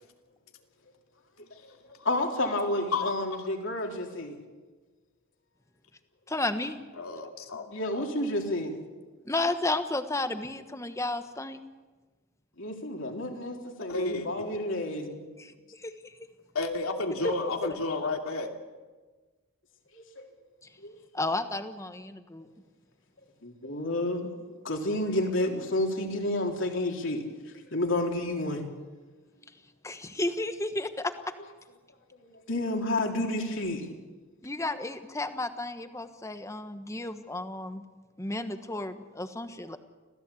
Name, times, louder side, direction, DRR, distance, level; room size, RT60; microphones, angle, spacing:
voice 1, 2.0-4.4 7.7-8.8 12.6-15.2 19.9-20.3 20.8-21.0 23.4-27.2 27.7-28.6 32.2-34.0, left 1 dB, 60° left, 1 dB, 3.7 m, -30 dB
voice 2, 6.3-6.8 9.2-11.6 15.4-16.1 17.2-17.3 21.1-22.5 29.8-31.1 34.4-37.8 38.2-39.8, left 2 dB, 15° left, 9 dB, 1.2 m, -32 dB
voice 3, 6.9-7.7 7.9-8.1 13.9-14.6 16.5-18.5, left 3 dB, 80° left, 3 dB, 2.8 m, -31 dB
26.5 x 16.5 x 8.5 m, 1.3 s
head